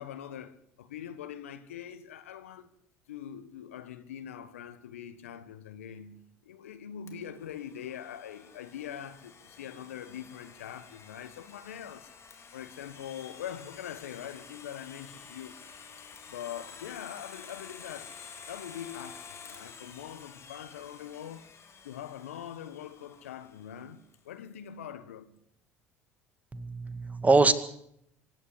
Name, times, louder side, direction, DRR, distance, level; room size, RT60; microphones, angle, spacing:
voice 1, 0.0-2.7 3.1-12.1 12.5-15.6 16.3-18.2 18.5-21.5 21.8-25.4, left 9 dB, 80° left, 1.4 m, -43 dB
Domestic sounds home sounds, 7.1-23.8, left 6 dB, 40° left, 3.4 m, -50 dB
voice 2, 26.5-27.5, right 3 dB, 20° right, 2.1 m, -23 dB
24.5 x 11.0 x 9.9 m
hypercardioid pair, 60°, 7 cm